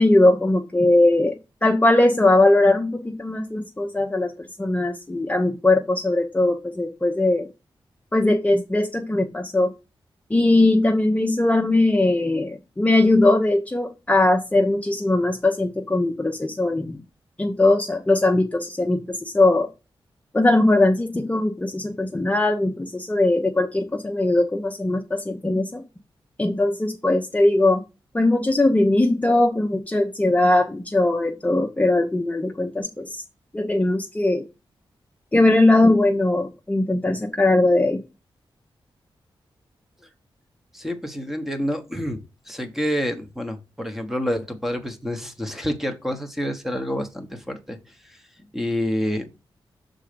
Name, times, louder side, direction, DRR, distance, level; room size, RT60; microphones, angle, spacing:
voice 1, 0.0-4.3 4.6-7.5 8.1-9.7 10.3-17.0 17.4-19.7 20.3-25.8 26.4-27.8 28.1-33.2 33.5-34.4 35.3-38.0, left 2 dB, 15° left, 2 dB, 0.7 m, -20 dB
voice 2, 40.7-49.3, equal, 5° right, 6 dB, 1.0 m, -28 dB
6.3 x 3.8 x 5.1 m, 0.28 s
wide cardioid pair, 100°, 9 cm